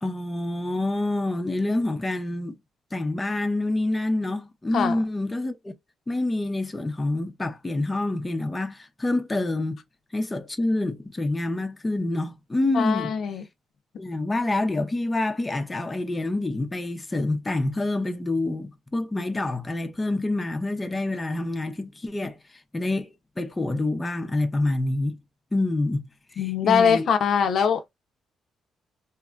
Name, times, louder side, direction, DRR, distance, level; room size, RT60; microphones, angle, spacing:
voice 1, 0.0-2.6 2.9-5.7 6.1-9.8 10.1-13.1 14.0-22.4 22.7-23.1 23.4-25.2 25.5-26.0 26.3-27.1, left 2 dB, 20° left, 0.5 m, -27 dB
voice 2, 12.7-13.4 26.4-27.8, left 7 dB, 65° left, 0.5 m, -22 dB
2.8 x 2.2 x 2.4 m
cardioid pair, 90°, 0 cm